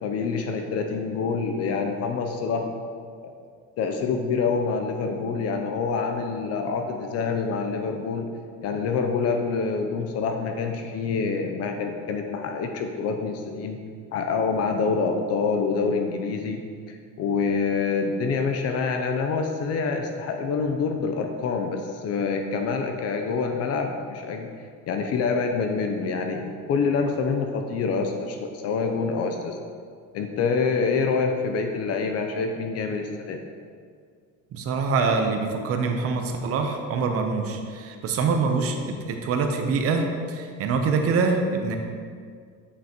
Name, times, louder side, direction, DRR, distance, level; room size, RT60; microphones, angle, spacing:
voice 1, 0.0-2.9 3.2-3.3 3.8-8.3 8.6-13.8 14.1-16.6 16.9-24.5 24.9-29.6 30.1-33.4, left 5 dB, 50° left, 4 dB, 0.5 m, -26 dB
voice 2, 34.5-41.8, right 4 dB, 45° right, 4 dB, 0.7 m, -25 dB
8.1 x 5.5 x 2.9 m, 2.1 s
cardioid pair, 160°, 32 cm